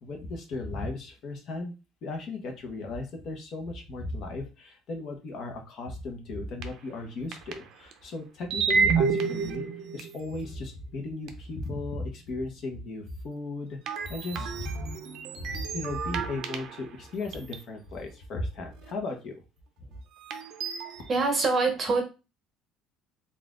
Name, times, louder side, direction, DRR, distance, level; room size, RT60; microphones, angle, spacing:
voice 1, 0.0-1.7 2.0-9.7 9.9-14.9 15.4-19.4, left 2 dB, 40° left, 1.0 m, -36 dB
sound 1, 6.6-6.7 7.3-7.9 8.5-10.5 11.3-11.4 13.9-16.9 17.3-17.6 18.8-18.9 20.2-21.1, right 5 dB, 50° right, 0.6 m, -30 dB
voice 2, 21.1-22.0, right 3 dB, 25° right, 0.9 m, -24 dB
4.1 x 2.4 x 3.7 m
cardioid pair, 175°, 0 cm